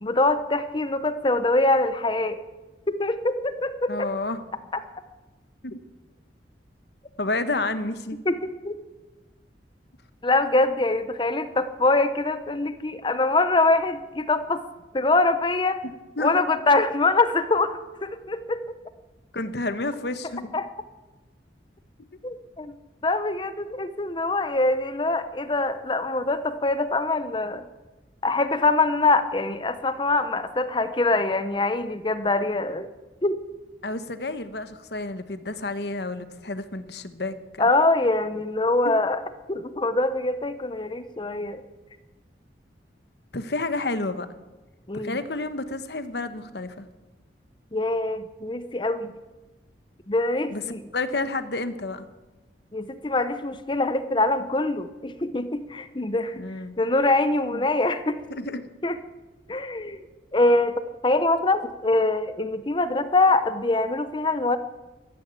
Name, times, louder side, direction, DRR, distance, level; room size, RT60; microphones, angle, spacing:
voice 1, 0.0-2.5 2.9-4.1 8.3-8.4 8.6-8.8 10.2-14.6 14.9-15.8 16.2-18.8 20.5-20.7 22.2-22.7 23.0-27.6 28.2-32.9 33.2-33.4 37.6-39.2 39.5-41.6 44.9-45.2 47.7-49.1 50.1-50.8 52.7-56.4 56.8-58.2 58.8-59.0 59.5-60.0 60.3-64.6, left 2 dB, 25° left, 11 dB, 0.7 m, -24 dB
voice 2, 3.9-4.4 5.6-5.8 7.2-8.2 16.2-16.3 19.3-20.5 33.8-37.7 38.8-38.9 43.3-44.3 45.0-46.8 50.5-50.6 50.9-52.1 56.4-56.7 57.5-57.7 58.3-58.7, left 2 dB, 65° left, 11 dB, 1.1 m, -30 dB
13.5 x 12.5 x 8.3 m, 1.1 s
head